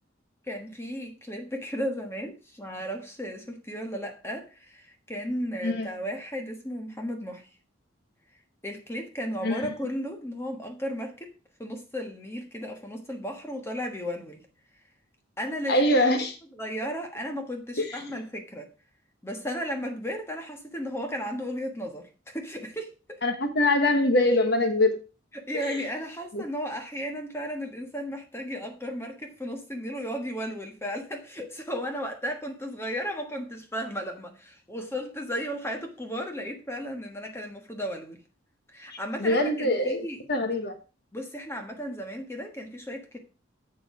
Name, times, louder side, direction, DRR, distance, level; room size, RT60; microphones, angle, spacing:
voice 1, 0.4-7.5 8.6-11.3 11.6-14.5 15.4-15.8 16.5-18.7 19.2-23.2 25.3-38.2 38.7-40.5 41.1-43.2, equal, 15° left, 1.4 m, -35 dB
voice 2, 15.7-16.4 17.8-17.9 23.2-25.0 25.5-25.8 26.3-26.4 38.9-40.7, left 1 dB, 55° left, 1.3 m, -24 dB
7.8 x 7.1 x 4.9 m
head